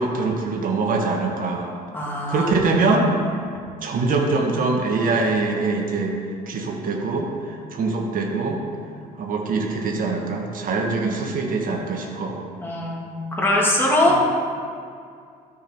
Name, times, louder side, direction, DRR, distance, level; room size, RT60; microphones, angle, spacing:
voice 1, 0.0-1.7 2.3-3.1 3.8-6.2 6.5-8.6 9.2-12.4, right 3 dB, 55° right, 1 dB, 1.7 m, -23 dB
voice 2, 1.9-2.5 12.6-14.2, left 1 dB, 15° left, -4 dB, 2.5 m, -21 dB
13.0 x 7.0 x 4.6 m, 2.2 s
cardioid pair, 110°, 17 cm